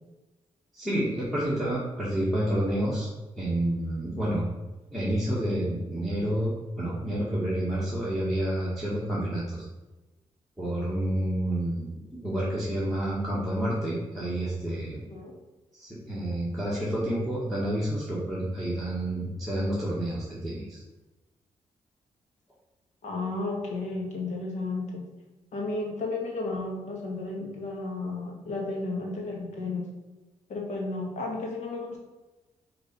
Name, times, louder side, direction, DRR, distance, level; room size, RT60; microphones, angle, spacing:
voice 1, 0.7-3.1 3.4-4.4 4.9-9.7 10.6-11.9 12.2-15.0 15.7-20.8, right 1 dB, ahead, -9 dB, 1.8 m, -29 dB
voice 2, 14.9-15.3 23.0-25.0 25.5-29.9 30.5-32.0, left 3 dB, 70° left, 0 dB, 1.9 m, -33 dB
5.1 x 4.3 x 5.4 m, 1.1 s
cardioid pair, 80°, 12 cm